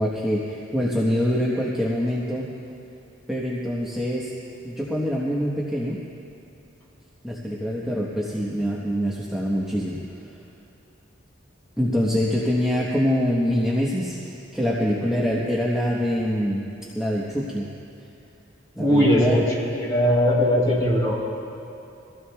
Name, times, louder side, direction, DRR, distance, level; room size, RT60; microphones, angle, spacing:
voice 1, 0.0-2.5 3.3-4.3 4.6-6.0 7.2-10.0 11.8-16.7 16.9-17.7 18.7-19.4, equal, 5° right, -6 dB, 1.1 m, -24 dB
voice 2, 18.8-21.1, equal, 20° left, -6 dB, 3.9 m, -20 dB
24.0 x 16.0 x 2.3 m, 2.8 s
head